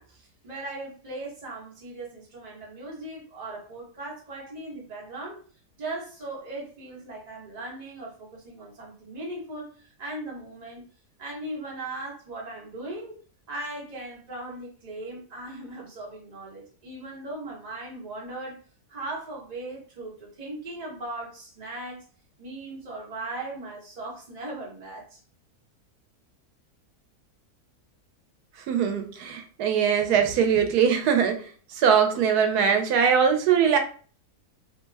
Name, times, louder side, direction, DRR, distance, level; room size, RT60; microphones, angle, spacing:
voice 1, 0.0-5.4 5.8-10.8 11.2-13.1 13.5-18.6 18.9-22.0 22.4-25.2, right 2 dB, 30° right, -3 dB, 1.0 m, -38 dB
voice 2, 28.7-33.8, right 7 dB, 90° right, 5 dB, 1.1 m, -22 dB
2.8 x 2.1 x 3.2 m, 0.41 s
omnidirectional pair, 1.6 m